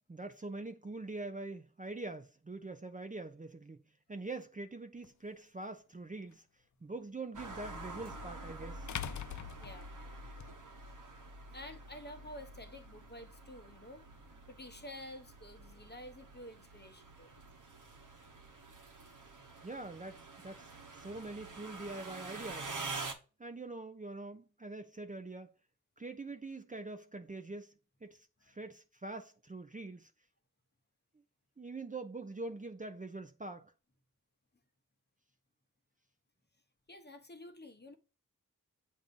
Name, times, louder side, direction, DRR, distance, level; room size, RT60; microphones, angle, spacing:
voice 1, 0.1-3.8 4.1-6.5 6.8-8.9 19.6-22.7 23.4-25.5 26.0-27.7 28.0-30.1 31.6-33.7, right 2 dB, 25° right, 0.6 m, -44 dB
sound 1, 5.0-5.1 7.7-7.8 8.9-10.5, left 10 dB, 60° left, 0.4 m, -42 dB
sound 2, 7.3-23.1, right 3 dB, 65° right, 1.0 m, -47 dB
voice 2, 11.5-14.0 14.5-17.3 36.9-38.0, left 1 dB, 30° left, 1.0 m, -50 dB
6.9 x 2.7 x 5.3 m
cardioid pair, 45°, 34 cm